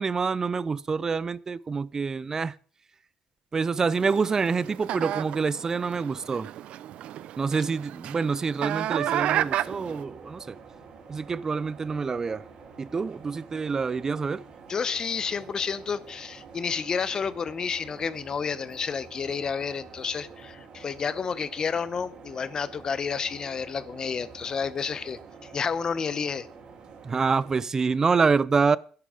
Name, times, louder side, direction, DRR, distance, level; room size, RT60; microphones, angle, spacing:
voice 1, 0.0-2.6 3.5-6.5 7.4-10.6 11.1-12.5 12.8-14.4 27.0-28.8, right 5 dB, 30° right, 0.6 m, -26 dB
sound 1, 3.9-10.0, right 12 dB, 70° right, 0.5 m, -32 dB
sound 2, 9.2-27.6, right 5 dB, 50° right, 3.5 m, -48 dB
voice 2, 14.7-26.5, left 6 dB, 35° left, 0.8 m, -30 dB
12.5 x 10.5 x 5.0 m
cardioid pair, 125°, 2 cm